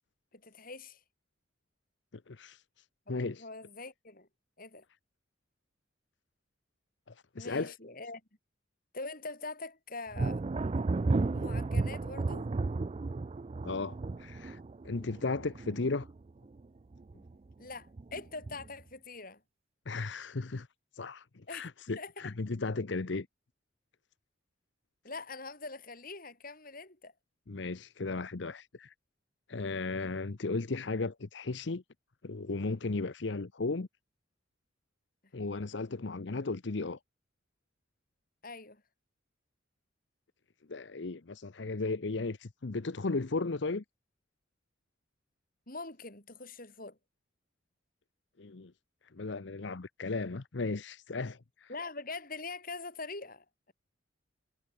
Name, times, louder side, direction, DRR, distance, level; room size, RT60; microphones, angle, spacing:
voice 1, 0.3-1.0 3.4-4.3 4.6-4.8 7.4-8.2 8.9-10.4 11.3-12.4 17.6-19.4 21.5-21.7 22.0-22.3 25.0-27.1 38.4-38.8 45.7-47.0 51.7-53.7, left 3 dB, 45° left, 6.6 m, -43 dB
voice 2, 2.1-3.5 7.1-7.7 13.6-14.6 14.8-16.1 19.9-20.7 20.9-23.3 27.5-28.9 29.5-31.8 32.2-33.9 35.3-37.0 40.7-43.8 48.4-48.7 49.1-51.7, left 3 dB, 65° left, 0.8 m, -35 dB
Thunder, 10.1-16.6 16.9-17.5 18.0-18.8, right 3 dB, 30° right, 0.4 m, -33 dB
head